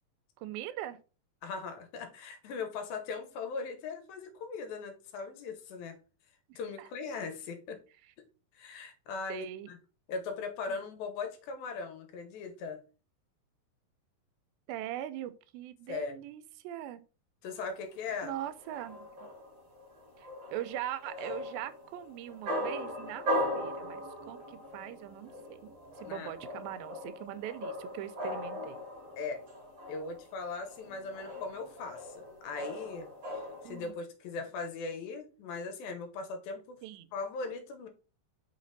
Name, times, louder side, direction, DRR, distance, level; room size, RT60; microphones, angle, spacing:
voice 1, 0.4-1.0 6.5-6.9 9.3-9.7 10.7-10.8 14.7-17.0 18.2-19.1 20.2-23.3 23.6-25.3 25.6-25.7 26.0-28.8 33.6-33.9 36.8-37.1, right 12 dB, 90° right, 2.4 m, -41 dB
voice 2, 1.4-6.0 6.6-7.8 8.5-9.8 10.1-12.8 15.9-16.2 17.4-18.4 26.0-26.3 29.2-29.4 29.9-33.1 33.6-36.8 37.1-37.9, left 4 dB, 85° left, 2.8 m, -39 dB
sound 1, 17.5-33.9, equal, 35° right, 2.4 m, -39 dB
5.8 x 4.1 x 4.0 m
omnidirectional pair, 4.2 m